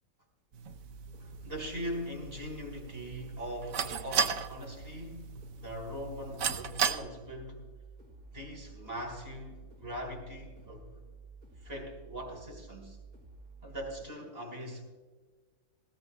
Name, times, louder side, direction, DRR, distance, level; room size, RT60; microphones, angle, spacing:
sound 1, 0.5-7.0, right 7 dB, 75° right, 1.2 m, -36 dB
sound 2, 0.7-14.1, right 4 dB, 45° right, 3.6 m, -52 dB
voice 1, 1.2-7.6 8.3-11.0 11.6-13.0 13.6-14.8, equal, 30° right, 4.1 m, -41 dB
20.0 x 16.0 x 2.2 m
omnidirectional pair, 1.5 m